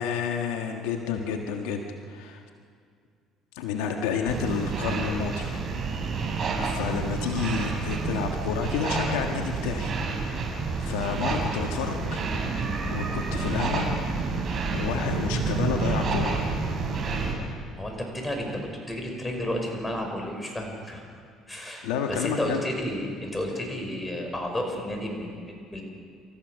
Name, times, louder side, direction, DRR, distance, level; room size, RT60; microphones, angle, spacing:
voice 1, 0.0-2.4 3.5-5.6 6.6-12.3 12.9-16.4 21.8-22.6, left 6 dB, 85° left, 3 dB, 1.6 m, -30 dB
sound 1, 4.2-17.3, right 4 dB, 45° right, 5.7 m, -29 dB
voice 2, 17.8-21.0 21.5-25.8, equal, 15° left, 2 dB, 5.8 m, -32 dB
29.0 x 14.5 x 6.5 m, 2.3 s
supercardioid pair, 80°, 0 cm